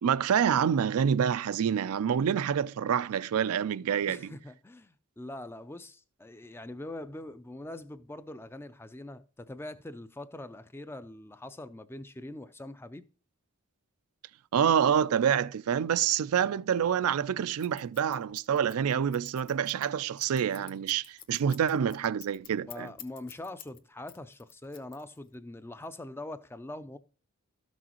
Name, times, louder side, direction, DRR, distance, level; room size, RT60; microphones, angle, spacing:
voice 1, 0.0-4.2 14.5-22.9, right 8 dB, 80° right, 0.4 m, -27 dB
voice 2, 3.9-13.0 22.6-27.0, left 1 dB, 10° left, 0.3 m, -43 dB
Scissors, 17.6-23.8 24.1-25.3, left 10 dB, 40° left, 0.8 m, -49 dB
13.0 x 6.2 x 2.9 m
head